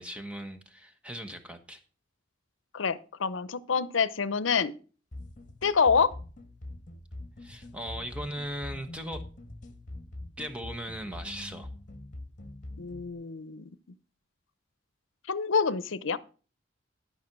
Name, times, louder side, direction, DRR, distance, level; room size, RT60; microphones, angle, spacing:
voice 1, 0.0-1.8 7.4-9.2 10.4-11.7, equal, 5° right, 7 dB, 1.1 m, -38 dB
voice 2, 2.7-4.7 5.6-6.1 12.8-13.7 15.3-16.2, left 5 dB, 80° left, 17 dB, 0.7 m, -27 dB
sound 1, 5.1-13.1, left 1 dB, 40° left, 1.6 m, -44 dB
13.0 x 5.8 x 6.0 m, 0.38 s
head